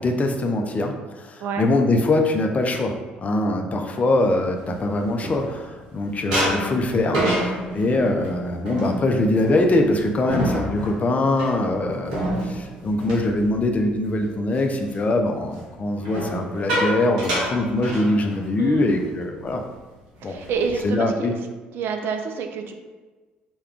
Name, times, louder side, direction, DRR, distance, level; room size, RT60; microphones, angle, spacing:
voice 1, 0.0-19.6 20.2-20.3 20.8-21.3, left 2 dB, 35° left, 3 dB, 0.4 m, -23 dB
sound 1, 4.4-5.9 6.3-14.1 14.5-14.8 16.0-18.6 18.9-19.1 19.4-19.7 20.2-20.8, right 1 dB, 85° right, 0.7 m, -28 dB
voice 2, 18.6-18.9 20.2-21.4 21.7-22.7, right 5 dB, 60° right, 5 dB, 0.3 m, -28 dB
2.3 x 2.2 x 3.6 m, 1.3 s
hypercardioid pair, 55°, 4 cm